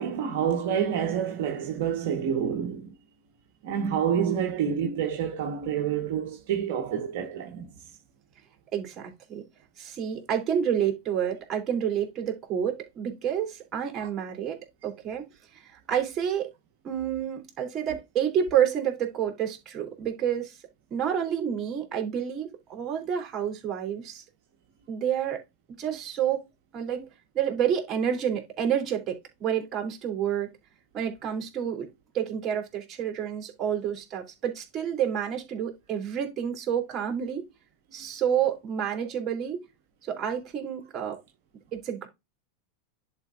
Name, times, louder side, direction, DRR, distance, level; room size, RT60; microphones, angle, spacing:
voice 1, 0.0-2.9 3.6-7.7 14.0-14.1 26.9-27.0, right 8 dB, 60° right, 1.2 m, -28 dB
voice 2, 8.7-9.4 9.8-15.3 15.5-16.5 16.8-20.6 20.9-24.2 24.9-25.4 25.8-26.5 26.7-27.0 27.3-30.5 30.9-31.9 32.1-37.4 37.9-39.6 40.0-41.2 41.7-42.1, right 9 dB, 35° right, 3.2 m, -29 dB
11.0 x 4.6 x 2.5 m
hypercardioid pair, 95°, 0 cm